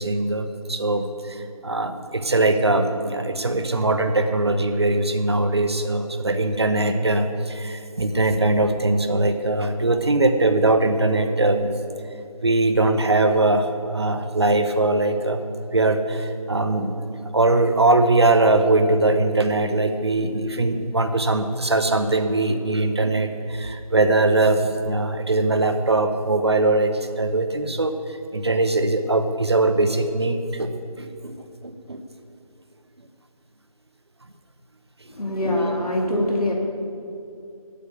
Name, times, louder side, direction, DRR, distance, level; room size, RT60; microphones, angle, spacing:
voice 1, 0.0-11.7 12.4-15.4 15.7-27.9 28.3-31.4 31.6-32.0 35.7-35.8, right 2 dB, 45° right, 8 dB, 0.8 m, -21 dB
voice 2, 35.1-36.5, left 1 dB, 80° left, 0 dB, 2.0 m, -23 dB
8.4 x 7.5 x 8.3 m, 2.5 s
figure-of-eight pair, 165°, 19 cm